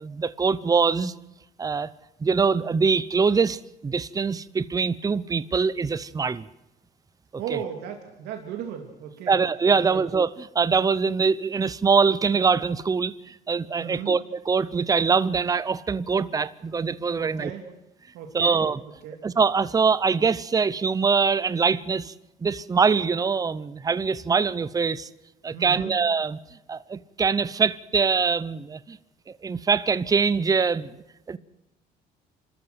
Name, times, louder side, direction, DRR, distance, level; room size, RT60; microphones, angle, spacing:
voice 1, 0.0-1.1 1.6-1.9 2.2-6.5 9.3-14.2 14.5-17.5 18.3-18.8 19.2-22.1 22.4-25.1 25.4-26.4 26.7-29.0 29.4-31.4, right 5 dB, 20° right, 0.7 m, -23 dB
voice 2, 7.4-9.4 9.9-10.0 13.8-14.1 17.2-17.7 18.1-18.6 19.0-19.2 25.5-25.9, right 8 dB, 85° right, 2.6 m, -35 dB
27.5 x 13.0 x 8.0 m
cardioid pair, 110°, 17 cm